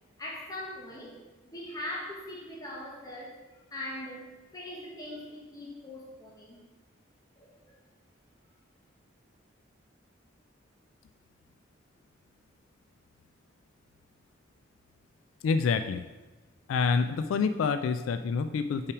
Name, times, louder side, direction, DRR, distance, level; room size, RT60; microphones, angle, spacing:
voice 1, 0.2-1.1 1.4-6.6 7.4-7.8, left 1 dB, 20° left, -4 dB, 1.1 m, -41 dB
voice 2, 15.4-16.1 16.7-18.9, left 5 dB, 90° left, 11 dB, 0.3 m, -27 dB
5.8 x 4.8 x 4.8 m, 1.1 s
head